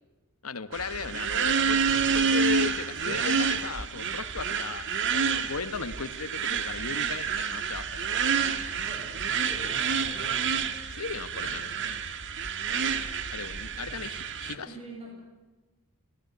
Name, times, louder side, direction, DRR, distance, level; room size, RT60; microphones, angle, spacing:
voice 1, 0.4-8.0 10.9-11.8 13.3-14.7, left 5 dB, 80° left, 12 dB, 1.4 m, -37 dB
sound 1, 0.7-14.5, right 6 dB, 60° right, 1.7 m, -28 dB
voice 2, 8.8-10.6 11.4-12.1 13.9-14.1 14.4-15.1, right 1 dB, 30° right, 0 dB, 7.4 m, -46 dB
27.5 x 18.0 x 9.6 m, 1.2 s
head